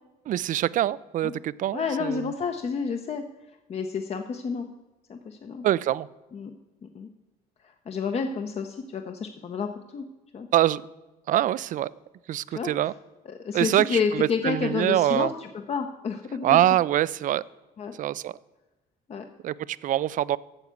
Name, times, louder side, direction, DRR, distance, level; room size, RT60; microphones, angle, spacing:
voice 1, 0.3-2.3 5.6-6.1 10.5-10.9 11.3-11.9 12.3-12.9 13.5-15.3 16.4-17.4 18.0-18.3 19.4-20.4, right 12 dB, 50° right, 20 dB, 0.4 m, -24 dB
voice 2, 1.7-3.2 3.7-4.7 5.1-5.6 6.3-6.5 6.8-7.1 7.6-10.0 10.3-10.5 12.5-12.7 13.4-16.6 17.8-17.9 19.1-19.3, left 5 dB, 40° left, 6 dB, 0.7 m, -30 dB
9.0 x 7.1 x 8.2 m, 1.1 s
cardioid pair, 110°, 17 cm